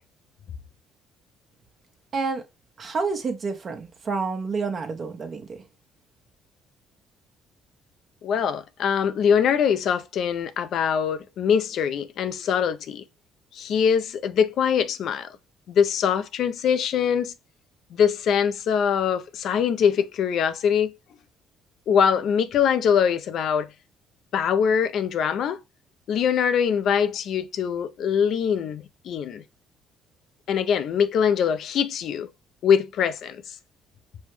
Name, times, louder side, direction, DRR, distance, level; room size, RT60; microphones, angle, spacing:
voice 1, 2.8-5.6, right 4 dB, 45° right, 1.0 m, -29 dB
voice 2, 8.2-13.0 13.5-15.3 15.7-17.3 17.9-20.9 21.9-23.7 24.3-25.6 26.1-29.4 30.5-32.3 32.6-33.6, left 7 dB, 65° left, 0.5 m, -23 dB
5.4 x 2.2 x 3.1 m
supercardioid pair, 75°, 0 cm